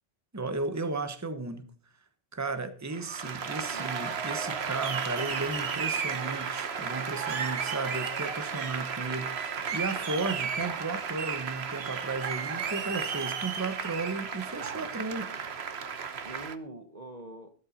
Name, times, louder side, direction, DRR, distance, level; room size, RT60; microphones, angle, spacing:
voice 1, 0.3-1.7 2.3-15.3, right 3 dB, 15° right, 1.1 m, -34 dB
Applause, 2.9-16.6, right 6 dB, 75° right, 1.3 m, -33 dB
voice 2, 3.7-4.1 4.5-5.0 16.2-17.5, right 2 dB, 40° right, 1.2 m, -45 dB
14.5 x 12.5 x 4.3 m
omnidirectional pair, 1.1 m